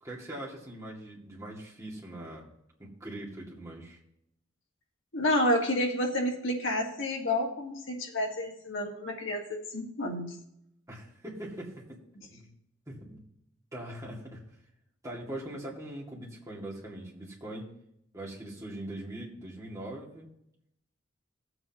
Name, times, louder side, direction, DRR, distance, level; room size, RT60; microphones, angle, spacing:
voice 1, 0.0-2.5 2.8-4.0 10.9-12.0 12.3-12.5 12.9-13.2 13.7-14.4 15.0-17.7 18.1-20.3, right 1 dB, 15° right, -4 dB, 2.3 m, -41 dB
voice 2, 5.1-10.3, left 1 dB, 65° left, 0 dB, 1.8 m, -30 dB
17.0 x 7.9 x 3.0 m, 0.77 s
head